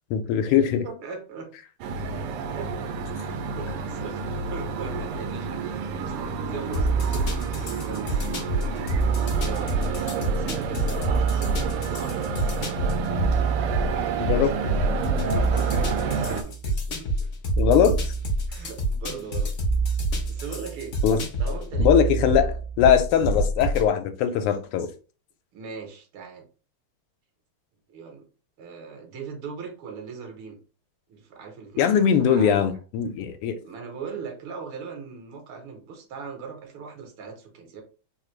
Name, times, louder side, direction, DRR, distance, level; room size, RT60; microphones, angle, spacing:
voice 1, 0.1-0.8 14.2-14.5 17.6-18.1 21.0-21.2 21.8-22.5 22.8-24.9 31.8-33.5, left 8 dB, 85° left, 1.5 m, -21 dB
voice 2, 0.8-1.5 2.5-2.8 3.2-4.2 4.5-5.6 6.0-8.7 9.3-9.7 10.1-13.1 13.7-17.3 18.5-19.5 20.1-21.0 21.4-22.6 24.3-24.4 25.5-26.5 27.9-28.3 28.6-30.6 31.1-32.8 33.6-37.8, right 5 dB, 75° right, 1.6 m, -40 dB
sound 1, 1.8-16.4, right 5 dB, 90° right, 1.5 m, -30 dB
sound 2, 6.7-23.9, right 2 dB, 70° left, 0.7 m, -26 dB
3.8 x 2.4 x 3.0 m
omnidirectional pair, 2.4 m